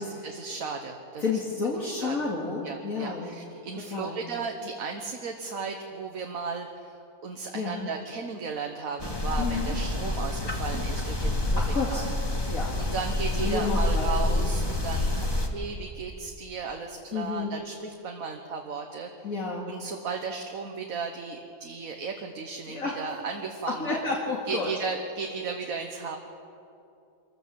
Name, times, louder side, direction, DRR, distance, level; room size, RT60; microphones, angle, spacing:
voice 1, 0.0-1.4 1.8-2.3 2.6-7.0 7.2-12.1 12.4-19.1 19.7-24.0 24.5-26.2, right 5 dB, 70° right, 3 dB, 1.6 m, -35 dB
voice 2, 1.2-3.4 3.9-4.3 7.5-7.9 9.4-9.7 11.5-12.1 12.5-12.7 13.3-14.6 17.1-17.5 19.2-19.7 22.7-23.0 23.7-24.7, left 4 dB, 70° left, -3 dB, 2.6 m, -31 dB
sound 1, 9.0-15.5, left 2 dB, 15° left, 1.5 m, -28 dB
25.0 x 15.0 x 7.6 m, 2.7 s
omnidirectional pair, 1.5 m